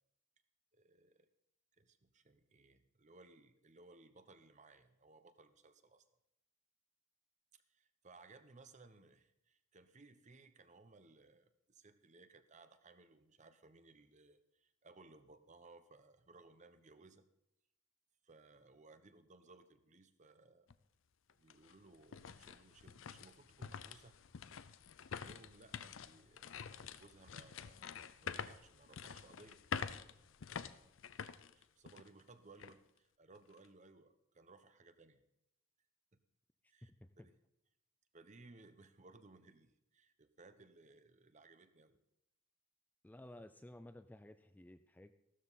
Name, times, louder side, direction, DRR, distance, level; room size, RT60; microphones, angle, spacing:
voice 1, 0.7-1.3 1.8-6.0 7.5-17.2 18.2-20.7 21.4-24.2 25.1-27.9 28.2-29.6 30.5-30.9 31.5-35.2 36.7-36.9 37.2-37.3 38.1-42.0, right 3 dB, 35° right, 10 dB, 0.9 m, -62 dB
sound 1, 20.7-20.8 21.3-32.2 32.6-32.7 33.3-33.7, left 6 dB, 70° left, 0.5 m, -47 dB
voice 2, 36.8-37.3 43.0-45.1, left 1 dB, 10° left, 10 dB, 0.4 m, -55 dB
14.5 x 12.5 x 4.1 m, 0.84 s
head